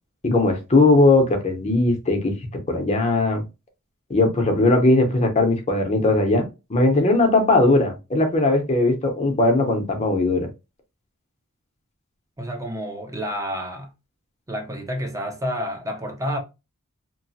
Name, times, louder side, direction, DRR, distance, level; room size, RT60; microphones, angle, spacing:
voice 1, 0.2-2.3 2.7-3.4 4.1-6.4 6.7-10.5, left 2 dB, 30° left, 0.7 m, -19 dB
voice 2, 12.4-13.9 14.5-16.4, equal, 15° right, 0.6 m, -29 dB
3.0 x 2.1 x 2.7 m
head